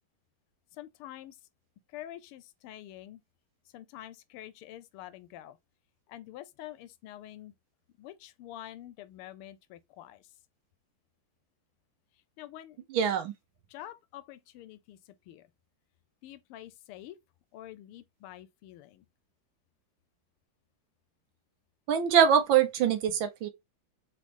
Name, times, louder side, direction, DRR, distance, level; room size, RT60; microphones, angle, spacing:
voice 1, 0.8-1.3 1.9-3.2 3.7-5.5 6.1-7.5 8.0-10.2 12.4-12.8 13.7-15.0 15.3-15.4 16.2-17.2 17.5-19.0, left 13 dB, 85° left, 1.5 m, -46 dB
voice 2, 12.9-13.3 21.9-23.5, right 8 dB, 70° right, 1.4 m, -24 dB
4.0 x 3.1 x 3.2 m
omnidirectional pair, 2.4 m